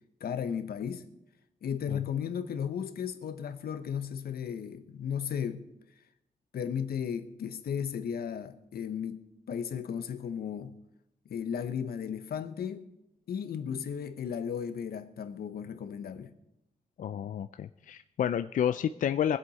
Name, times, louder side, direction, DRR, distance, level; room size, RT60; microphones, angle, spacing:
voice 1, 0.2-1.0 1.6-5.6 6.5-10.8 11.3-12.9 13.3-16.3, left 8 dB, 85° left, 1.0 m, -35 dB
voice 2, 17.0-19.4, left 9 dB, 60° left, 0.4 m, -30 dB
23.0 x 8.1 x 4.2 m
wide cardioid pair, 175°, 15 cm